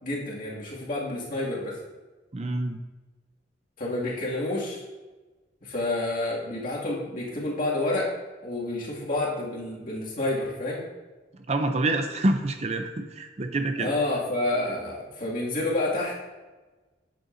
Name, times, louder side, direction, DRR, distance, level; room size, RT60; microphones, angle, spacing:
voice 1, 0.0-1.8 3.8-4.8 5.6-8.1 8.4-10.9 13.8-16.1, left 2 dB, 45° left, -5 dB, 2.3 m, -29 dB
voice 2, 2.3-2.8 11.5-13.9, right 2 dB, 35° right, 6 dB, 0.5 m, -27 dB
11.0 x 7.9 x 2.7 m, 1.2 s
head